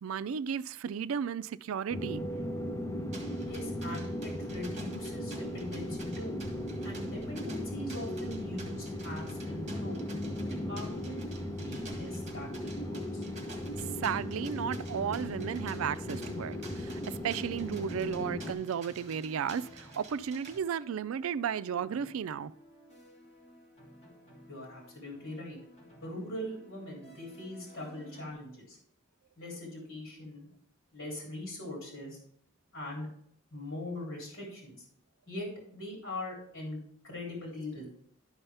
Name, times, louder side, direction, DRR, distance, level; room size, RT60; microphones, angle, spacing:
voice 1, 0.0-2.2 14.0-22.5, right 7 dB, 90° right, 0.4 m, -34 dB
sound 1, 1.9-18.5, left 1 dB, 15° left, 0.7 m, -37 dB
sound 2, 3.1-20.6, right 3 dB, 35° right, 1.8 m, -51 dB
voice 2, 3.4-6.4 6.8-10.0 10.5-11.2 11.5-13.2 24.5-25.6 26.0-28.8 29.4-30.5 30.9-32.2 32.7-33.1 33.5-34.8 35.3-36.8 37.0-37.9, left 1 dB, 80° left, 3.2 m, -41 dB
sound 3, 15.2-28.3, equal, 35° left, 3.0 m, -56 dB
12.0 x 5.6 x 3.4 m
head